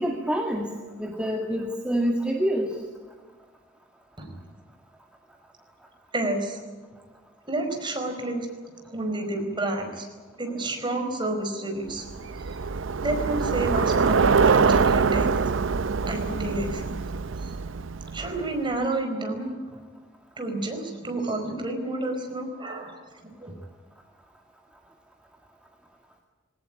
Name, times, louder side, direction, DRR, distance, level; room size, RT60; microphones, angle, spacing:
voice 1, 0.0-2.8, equal, 5° right, 1 dB, 2.0 m, -27 dB
voice 2, 6.1-6.6 7.4-8.5 8.9-10.0 10.4-12.1 13.0-15.3 16.1-16.8 17.4-17.5 18.1-19.5 20.4-23.0 23.4-23.5, right 2 dB, 25° right, 4 dB, 4.7 m, -29 dB
Bicycle, 12.0-18.6, right 5 dB, 85° right, 0.6 m, -24 dB
21.5 x 18.5 x 9.9 m, 1.4 s
head